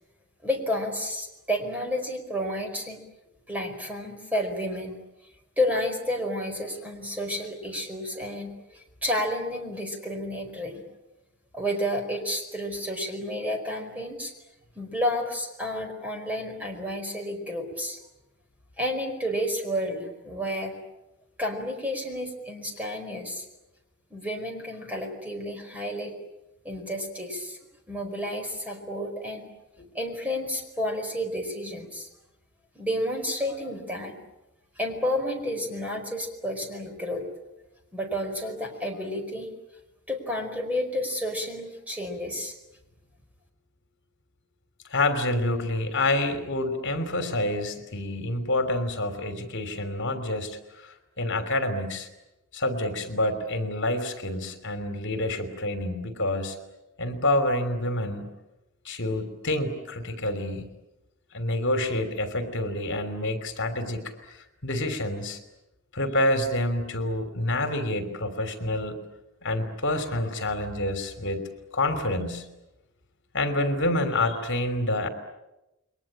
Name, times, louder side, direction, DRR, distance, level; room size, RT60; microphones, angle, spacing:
voice 1, 0.4-3.0 3.5-4.9 5.6-10.8 11.5-14.3 14.7-18.0 18.8-20.8 21.4-23.4 24.1-26.2 26.6-27.6 27.9-29.5 29.9-32.1 32.7-34.1 34.8-37.2 37.9-39.5 40.1-42.5, equal, 5° right, 4 dB, 4.9 m, -31 dB
voice 2, 44.9-52.1 52.5-56.6 57.0-58.3 58.8-60.6 61.3-65.4 65.9-69.0 69.4-71.4 71.7-72.4 73.3-75.1, left 1 dB, 60° left, 8 dB, 3.2 m, -28 dB
29.5 x 23.0 x 8.8 m, 0.95 s
head